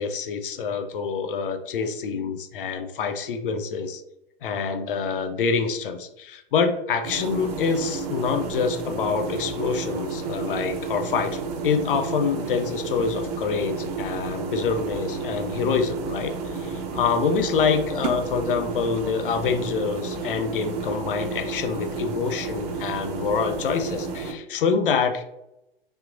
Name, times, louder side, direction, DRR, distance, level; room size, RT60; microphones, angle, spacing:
voice 1, 0.0-4.0 4.4-11.4 11.6-25.2, left 5 dB, 65° left, 7 dB, 0.5 m, -26 dB
sound 1, 7.0-24.3, right 4 dB, 40° right, 0.6 m, -31 dB
3.4 x 2.8 x 2.5 m, 0.86 s
figure-of-eight pair, 105°, 30 cm